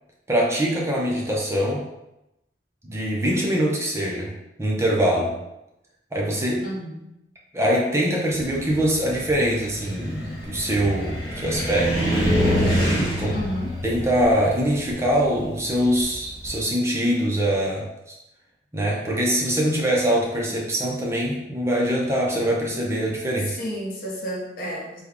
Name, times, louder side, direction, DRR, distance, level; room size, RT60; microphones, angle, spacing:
voice 1, 0.3-1.8 2.8-4.3 4.6-5.3 6.1-6.6 7.5-12.3 12.9-13.4 13.8-18.1 18.7-23.6, equal, 15° right, -3 dB, 0.6 m, -23 dB
voice 2, 6.6-7.1 13.3-13.8 23.4-25.0, equal, 55° left, -3 dB, 0.9 m, -31 dB
Car, 8.4-16.6, equal, 25° left, 1.1 m, -26 dB
3.3 x 2.3 x 3.6 m, 0.89 s
head